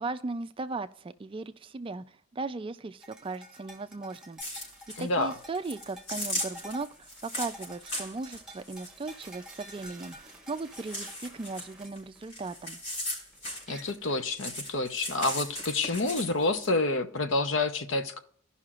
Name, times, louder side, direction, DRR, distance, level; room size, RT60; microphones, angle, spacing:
voice 1, 0.0-4.4 5.0-12.8, right 3 dB, 25° right, 11 dB, 0.3 m, -37 dB
sound 1, 3.0-14.2, equal, 5° right, 1.2 m, -50 dB
sound 2, 4.4-5.0 5.4-10.3 10.6-14.1 14.4-16.7, left 1 dB, 85° left, 4.1 m, -37 dB
voice 2, 5.0-5.3 13.7-18.2, left 2 dB, 65° left, 9 dB, 0.8 m, -28 dB
16.5 x 5.6 x 2.4 m, 0.62 s
head